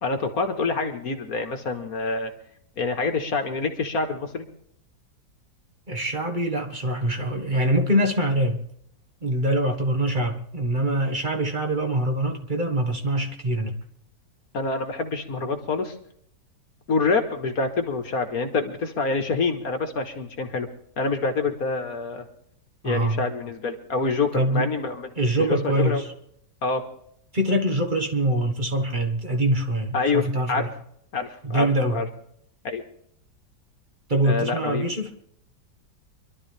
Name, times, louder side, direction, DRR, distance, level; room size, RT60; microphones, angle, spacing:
voice 1, 0.0-2.3 2.8-4.5 14.5-16.0 16.9-20.7 21.0-22.3 22.8-26.0 26.6-26.8 29.9-30.7 31.1-32.1 32.6-32.8 34.2-34.9, left 4 dB, 55° left, 1.9 m, -26 dB
voice 2, 5.9-8.6 9.2-13.8 22.8-23.2 24.3-24.7 25.2-26.1 27.3-30.7 31.4-32.0 34.1-35.1, right 1 dB, 30° right, 1.6 m, -24 dB
24.5 x 12.5 x 3.4 m
omnidirectional pair, 1.8 m